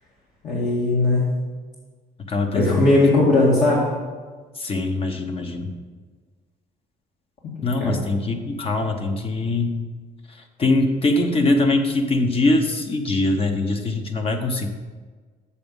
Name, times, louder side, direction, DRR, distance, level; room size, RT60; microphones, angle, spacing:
voice 1, 0.4-1.3 2.5-3.9 7.6-8.0, left 2 dB, 55° left, -6 dB, 2.0 m, -19 dB
voice 2, 2.3-2.8 4.6-5.7 7.6-9.8 10.6-14.7, left 2 dB, 35° left, 5 dB, 1.0 m, -22 dB
7.0 x 6.9 x 5.4 m, 1.4 s
cardioid pair, 110°, 17 cm